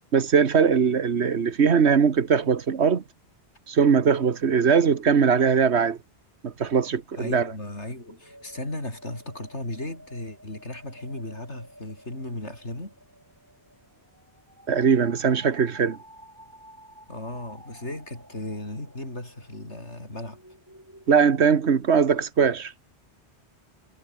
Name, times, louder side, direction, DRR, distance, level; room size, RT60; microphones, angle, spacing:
voice 1, 0.1-3.0 3.7-6.0 6.4-7.5 14.7-16.0 21.1-22.7, right 6 dB, 75° right, 1.6 m, -21 dB
voice 2, 7.1-12.9 17.1-20.4, left 1 dB, 90° left, 7.5 m, -36 dB
sound 1, 7.9-21.2, equal, 15° right, 6.0 m, -51 dB
omnidirectional pair, 1.1 m